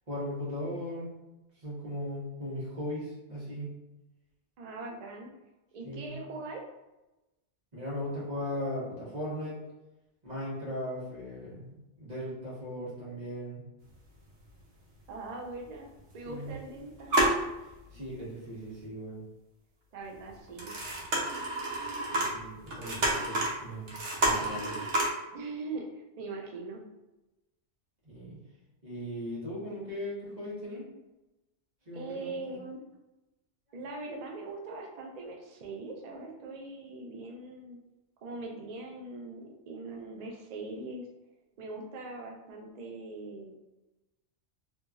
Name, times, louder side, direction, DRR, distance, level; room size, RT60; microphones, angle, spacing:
voice 1, 0.1-1.1 1.6-3.7 5.8-6.1 7.7-9.6 10.2-13.6 16.2-16.5 17.9-19.2 22.1-23.9 24.2-24.8 28.0-28.4 28.8-30.8 31.8-32.6, equal, 35° right, -7 dB, 1.2 m, -38 dB
voice 2, 4.6-5.3 5.7-6.6 15.1-15.9 16.1-17.2 17.9-18.0 19.9-20.7 25.3-26.8 31.9-32.8 33.7-37.8 38.2-41.1 41.6-43.6, right 3 dB, 85° right, 0 dB, 0.3 m, -41 dB
sound 1, 13.9-14.0 14.3-14.5 15.4-15.5 16.0-16.7 16.9-18.1 18.6-18.7 20.3-25.1, right 1 dB, 70° right, 1.0 m, -30 dB
2.9 x 2.6 x 2.3 m, 1.0 s
omnidirectional pair, 1.2 m